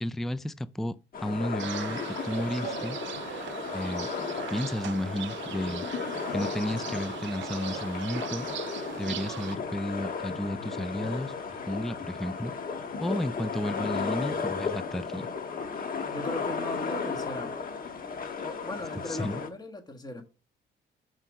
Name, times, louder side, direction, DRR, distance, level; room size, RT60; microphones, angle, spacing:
voice 1, 0.0-3.0 3.7-4.1 4.5-5.9 6.3-8.5 9.0-11.3 11.7-12.5 13.0-15.3 19.1-19.4, left 1 dB, ahead, 0.3 m, -32 dB
sound 1, 1.1-19.5, left 5 dB, 45° left, 1.3 m, -35 dB
sound 2, 1.6-9.6, right 12 dB, 70° right, 0.6 m, -39 dB
voice 2, 16.1-17.6 18.4-20.2, left 1 dB, 20° left, 1.5 m, -38 dB
5.7 x 4.6 x 6.3 m
cardioid pair, 90°, 20 cm